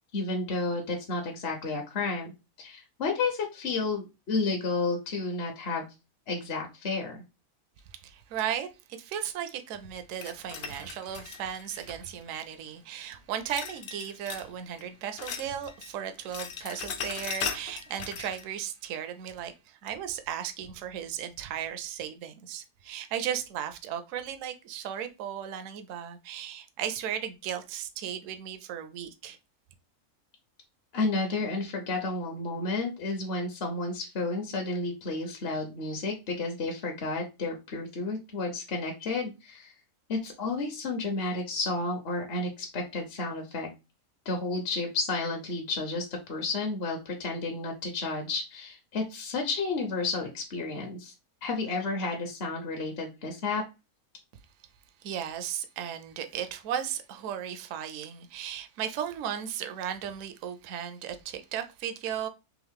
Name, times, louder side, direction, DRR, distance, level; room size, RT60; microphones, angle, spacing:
voice 1, 0.1-2.3 2.6-5.9 6.3-7.2 30.9-39.7 40.1-43.7 44.2-51.1 51.4-53.6, left 3 dB, 50° left, 0.9 m, -31 dB
voice 2, 8.0-29.4 55.0-62.3, right 9 dB, 70° right, 0.9 m, -36 dB
sound 1, 10.2-12.3 13.5-14.5 14.8-18.5, left 6 dB, 80° left, 0.4 m, -38 dB
3.6 x 3.0 x 3.5 m
omnidirectional pair, 1.5 m